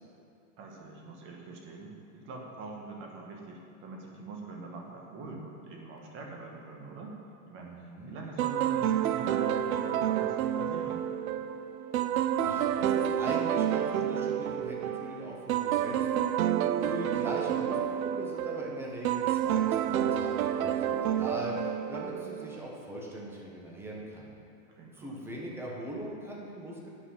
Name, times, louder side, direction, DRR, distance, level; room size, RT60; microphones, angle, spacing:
voice 1, 0.6-7.2 7.5-11.0 24.7-25.2, right 3 dB, 30° right, 0 dB, 1.4 m, -44 dB
voice 2, 7.6-8.1 12.4-24.4 24.9-26.9, equal, 5° right, -3 dB, 1.1 m, -41 dB
sound 1, 8.4-22.6, right 10 dB, 90° right, 0.5 m, -29 dB
9.6 x 5.8 x 5.7 m, 2.6 s
supercardioid pair, 150°, 41 cm